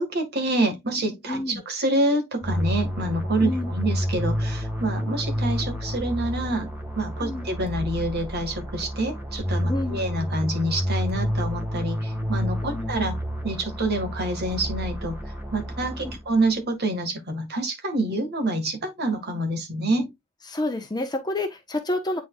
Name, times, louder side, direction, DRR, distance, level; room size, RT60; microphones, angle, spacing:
voice 1, 0.0-6.7 7.0-13.1 13.4-15.2 15.5-20.1, right 1 dB, 50° right, 1.9 m, -27 dB
voice 2, 1.3-1.6 3.4-3.7 7.2-7.5 9.7-10.0 12.6-12.9 16.0-16.2 20.5-22.2, left 2 dB, 20° left, 1.0 m, -29 dB
sound 1, 2.4-16.5, equal, 10° right, 1.9 m, -29 dB
9.3 x 4.2 x 2.4 m
head